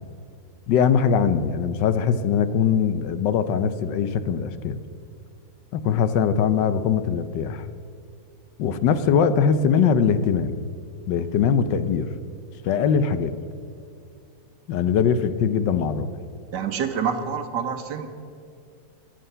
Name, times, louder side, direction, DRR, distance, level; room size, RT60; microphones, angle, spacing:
voice 1, 0.7-4.8 5.7-7.7 8.6-10.6 11.1-12.1 12.6-13.3 14.7-16.1, left 7 dB, 75° left, 12 dB, 1.3 m, -21 dB
voice 2, 16.5-18.1, right 7 dB, 70° right, 8 dB, 1.6 m, -27 dB
20.5 x 7.7 x 5.6 m, 2.3 s
omnidirectional pair, 2.0 m